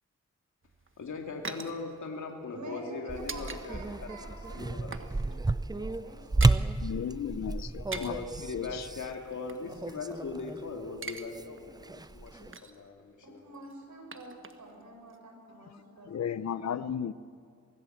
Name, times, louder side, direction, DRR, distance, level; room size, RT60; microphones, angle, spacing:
sound 1, 0.6-3.6 3.9-4.1 4.4-5.2 5.4-5.6 5.8-6.7 7.7-8.3 9.1-10.5 10.8-11.3 11.6-11.7 12.1-12.9 13.5-14.8 15.1-15.2, right 3 dB, 45° right, 1.5 m, -43 dB
voice 1, 1.0-3.8 4.5-5.2 7.9-13.4, left 4 dB, 80° left, 2 dB, 2.4 m, -40 dB
voice 2, 2.5-6.6 13.2-16.7, right 2 dB, 80° right, 1 dB, 6.3 m, -48 dB
sound 2, 3.1-10.7 11.0-12.5, right 2 dB, 15° right, 0.5 m, -32 dB
voice 3, 6.8-8.1 8.5-8.9 16.1-17.1, left 8 dB, 65° left, 14 dB, 0.6 m, -34 dB
24.0 x 19.0 x 7.9 m, 2.2 s
wide cardioid pair, 80°, 29 cm